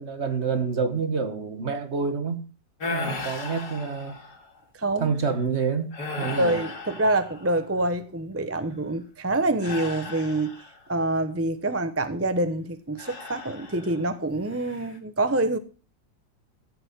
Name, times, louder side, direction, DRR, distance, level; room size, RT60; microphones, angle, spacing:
voice 1, 0.0-2.4 2.9-4.1 5.0-5.9 6.2-6.5, right 5 dB, 35° right, 1.6 m, -27 dB
sound 1, 2.8-4.5 5.1-5.3 5.9-7.8 9.6-10.9 13.0-14.1 14.5-15.0, left 3 dB, 60° left, 2.8 m, -36 dB
voice 2, 4.7-5.1 6.2-10.5 10.9-15.6, right 2 dB, 15° right, 0.5 m, -26 dB
15.0 x 7.8 x 6.7 m
omnidirectional pair, 2.1 m